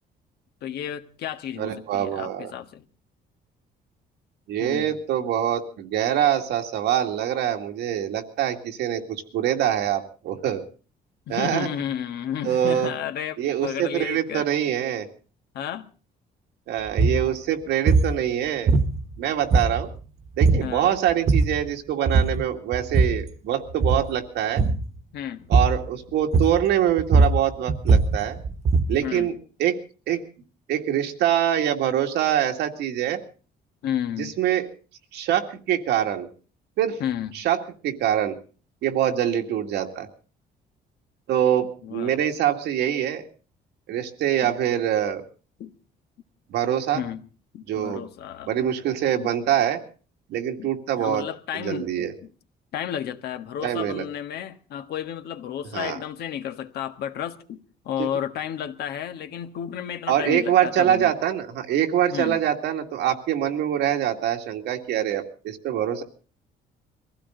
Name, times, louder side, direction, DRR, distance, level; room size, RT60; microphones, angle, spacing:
voice 1, 0.6-2.8 4.6-5.0 11.3-14.5 15.5-15.9 20.6-21.0 25.1-25.5 29.0-29.3 33.8-34.4 37.0-37.3 41.8-42.1 44.4-44.6 45.6-45.7 46.9-47.3 47.5-48.5 49.2-49.4 50.6-50.7 51.0-52.3 52.7-61.1 62.1-62.5, left 10 dB, 70° left, 1.5 m, -32 dB
voice 2, 1.6-2.5 4.5-10.6 11.3-11.7 12.4-12.9 13.4-15.1 16.7-18.7 19.2-19.9 20.4-24.6 25.5-28.4 28.9-29.3 29.6-29.8 30.1-30.2 30.7-33.2 34.2-34.7 35.1-36.3 36.8-37.0 37.3-37.6 37.8-38.4 38.8-40.1 41.3-43.3 43.9-45.2 46.5-47.0 47.7-48.0 48.5-49.8 50.3-51.2 51.5-52.1 53.6-54.0 55.7-56.0 58.0-58.1 60.1-66.0, right 10 dB, 90° right, 2.3 m, -24 dB
sound 1, 16.9-17.2 17.9-18.2 18.7-19.2 19.5-20.0 20.4-20.7 21.1-21.6 22.1-22.4 22.7-23.3 23.7-24.1 24.6-24.9 25.5-25.9 26.3-26.7 27.0-29.0, right 4 dB, 40° right, 1.4 m, -20 dB
23.0 x 15.5 x 3.9 m
cardioid pair, 160°, 17 cm